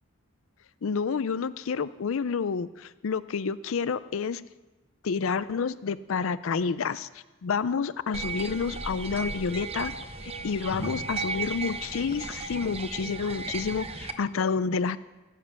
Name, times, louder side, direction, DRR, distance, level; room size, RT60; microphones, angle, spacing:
voice 1, 0.8-4.4 5.0-7.1 7.4-9.9 10.2-15.0, left 5 dB, 70° left, 16 dB, 0.4 m, -29 dB
sound 1, 8.1-14.1, right 3 dB, 25° right, 0.7 m, -35 dB
15.0 x 7.4 x 6.9 m, 1.1 s
head